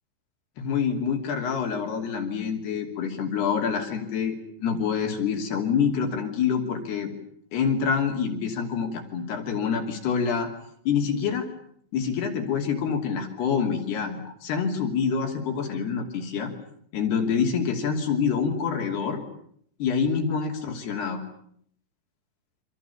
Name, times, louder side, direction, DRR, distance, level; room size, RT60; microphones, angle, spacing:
voice 1, 0.6-7.1 7.5-10.5 10.9-11.4 11.9-16.5 16.9-19.2 19.8-21.2, left 6 dB, 65° left, 3 dB, 4.8 m, -26 dB
29.0 x 25.5 x 7.1 m, 0.67 s
omnidirectional pair, 5.0 m